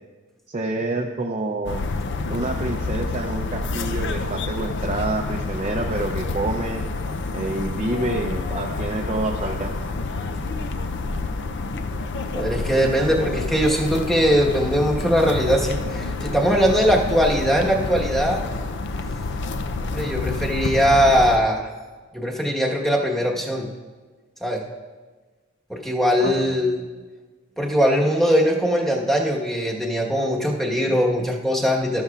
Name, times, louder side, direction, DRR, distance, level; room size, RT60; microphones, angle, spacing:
voice 1, 0.5-1.8 2.3-6.8 7.3-9.7 26.2-26.3, right 2 dB, 35° right, 1 dB, 0.6 m, -27 dB
sound 1, 1.7-21.4, left 3 dB, 60° left, 0.5 m, -28 dB
voice 2, 12.3-18.4 19.8-21.7 22.1-23.7 24.4-24.6 25.7-26.8 27.6-32.0, equal, ahead, -2 dB, 1.3 m, -21 dB
12.5 x 12.0 x 2.4 m, 1.4 s
head